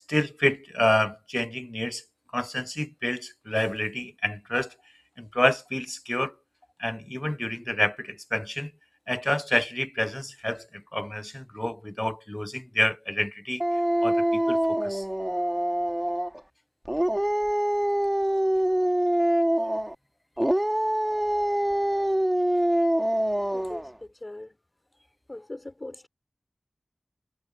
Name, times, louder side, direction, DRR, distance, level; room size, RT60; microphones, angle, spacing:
voice 1, 0.1-2.0 2.3-4.7 5.2-6.3 6.8-8.7 9.1-13.6 14.0-15.0, left 1 dB, 15° left, 0.5 m, -28 dB
Dog, 13.6-16.4 16.9-20.0 20.4-23.9, right 1 dB, 10° right, 1.9 m, -25 dB
voice 2, 23.5-24.6 25.3-26.1, left 1 dB, 30° left, 4.8 m, -41 dB
wide cardioid pair, 70°, 0 cm